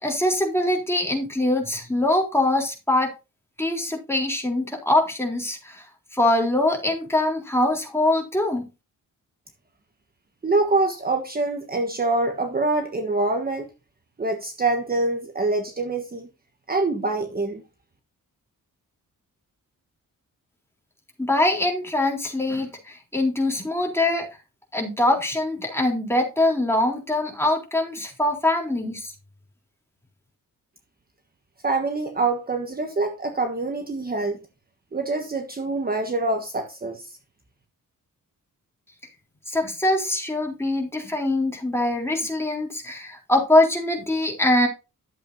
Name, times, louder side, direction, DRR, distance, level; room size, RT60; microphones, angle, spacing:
voice 1, 0.0-3.1 3.6-5.8 6.1-8.7 21.2-24.3 24.7-29.1 39.5-44.7, left 1 dB, 5° left, 3.8 m, -23 dB
voice 2, 10.4-13.7 14.2-16.3 16.7-17.6 31.6-34.4 34.9-37.2, right 3 dB, 30° right, 1.4 m, -25 dB
12.0 x 8.1 x 2.8 m
wide cardioid pair, 115°, 33 cm